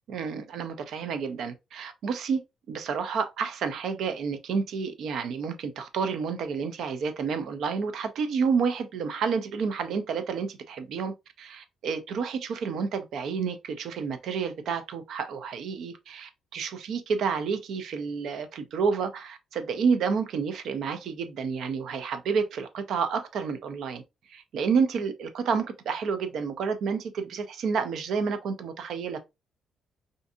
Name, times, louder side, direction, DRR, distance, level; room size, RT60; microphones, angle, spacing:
voice 1, 0.1-2.4 2.7-24.0 24.3-29.2, right 5 dB, 70° right, 0.5 m, -30 dB
2.5 x 2.5 x 2.4 m
cardioid pair, 90°, 0 cm